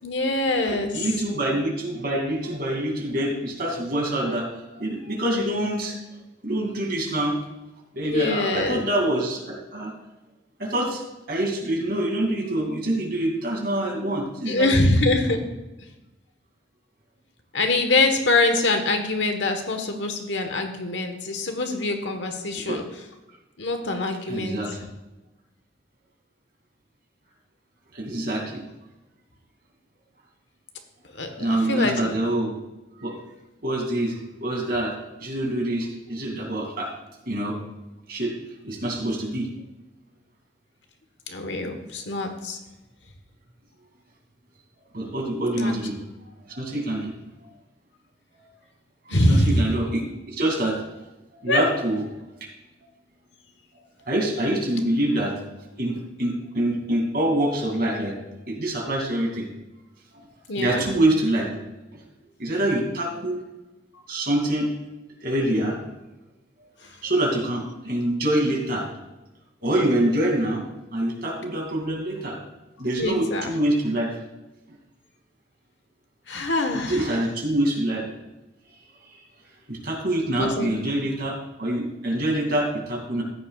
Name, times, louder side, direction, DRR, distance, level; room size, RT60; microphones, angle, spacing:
voice 1, 0.0-1.1 8.0-8.8 14.5-15.4 17.5-22.8 23.6-24.6 31.1-32.1 41.3-42.6 45.5-45.7 49.1-49.7 51.5-51.6 60.5-60.8 66.8-67.0 73.0-73.5 76.3-77.1 80.4-80.7, left 2 dB, 75° left, 5 dB, 1.3 m, -24 dB
voice 2, 0.9-4.5 4.8-6.0 6.4-7.4 7.9-9.9 10.6-11.0 11.3-14.7 22.7-22.8 24.3-24.8 27.9-28.6 31.4-32.5 33.0-33.1 33.6-34.1 34.4-34.9 35.2-36.9 37.3-37.6 38.1-38.3 38.6-39.5 44.9-46.0 46.5-47.1 49.1-50.8 51.4-52.0 54.1-55.3 55.8-58.1 58.5-59.5 60.6-61.5 61.9-62.0 62.4-63.4 64.1-64.7 65.2-65.8 67.0-68.9 69.6-72.4 72.8-74.1 76.8-78.0 79.7-83.2, right 1 dB, 50° right, 0 dB, 2.6 m, -25 dB
14.5 x 9.9 x 2.4 m, 1.0 s
head